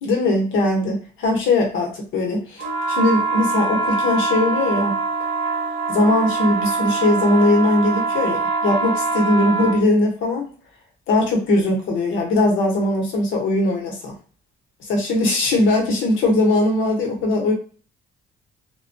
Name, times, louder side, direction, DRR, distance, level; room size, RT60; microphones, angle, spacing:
voice 1, 0.0-5.0 5.9-10.5 11.1-14.1 14.8-17.5, left 2 dB, 85° left, -1 dB, 0.9 m, -20 dB
sound 1, 2.6-9.8, right 4 dB, 70° right, 0.7 m, -23 dB
2.2 x 2.2 x 2.6 m, 0.38 s
cardioid pair, 90°, 20 cm